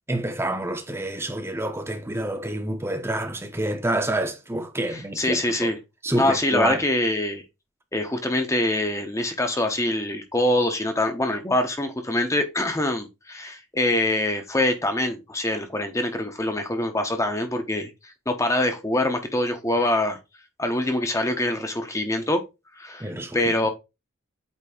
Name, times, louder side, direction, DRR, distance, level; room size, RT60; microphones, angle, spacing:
voice 1, 0.1-5.7 6.0-6.8 23.0-23.4, right 1 dB, 10° right, 0.9 m, -28 dB
voice 2, 4.9-5.8 6.1-7.4 7.9-20.2 20.6-22.4 22.8-23.7, left 1 dB, 15° left, 0.9 m, -24 dB
8.4 x 3.0 x 4.3 m
head